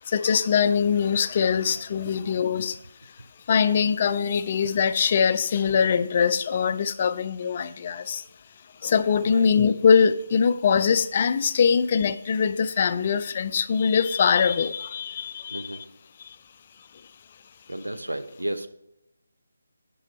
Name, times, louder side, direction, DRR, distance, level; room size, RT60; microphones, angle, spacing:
voice 1, 0.0-2.8 3.5-8.2 8.8-15.8 16.2-16.4, left 6 dB, 35° left, 0.3 m, -22 dB
voice 2, 15.5-15.8 17.7-18.7, right 1 dB, 85° right, 0.6 m, -32 dB
5.6 x 5.5 x 4.6 m
figure-of-eight pair, 155°, 0 cm